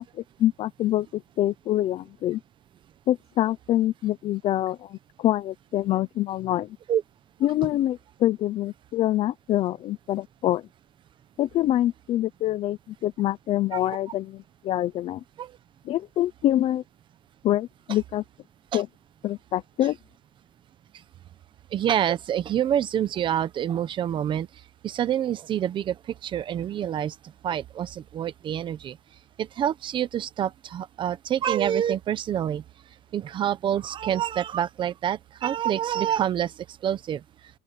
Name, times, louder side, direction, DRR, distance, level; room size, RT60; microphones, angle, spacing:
voice 1, 0.0-2.4 3.1-6.8 7.4-10.7 11.4-15.2 15.8-16.8 17.4-18.2 18.7-18.9 19.2-20.0, left 13 dB, 40° left, 0.6 m, -25 dB
voice 2, 21.7-24.5 24.8-26.0 26.2-27.1 27.4-29.0 29.4-32.6 33.1-36.5 36.8-37.2, right 10 dB, 30° right, 0.9 m, -26 dB
open air
cardioid pair, 160°, 16 cm